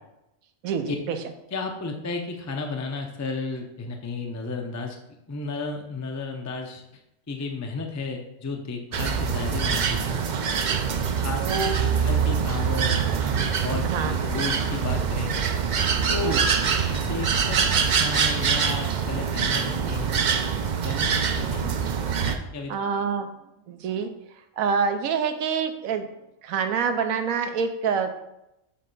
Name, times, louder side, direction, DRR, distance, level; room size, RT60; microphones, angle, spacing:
voice 1, 0.6-1.2 11.4-12.0 13.8-14.2 16.1-16.4 22.7-23.3 23.7-24.1 24.6-26.1 26.4-28.1, right 6 dB, 85° right, 7 dB, 1.1 m, -26 dB
voice 2, 1.5-5.0 5.3-6.8 7.3-10.2 11.2-11.5 11.8-15.4 16.1-16.4 16.9-21.7 22.2-22.7, left 3 dB, 20° left, 3 dB, 0.4 m, -33 dB
sound 1, 8.9-22.4, right 6 dB, 65° right, 0.4 m, -24 dB
7.2 x 3.3 x 5.3 m, 0.87 s
omnidirectional pair, 1.4 m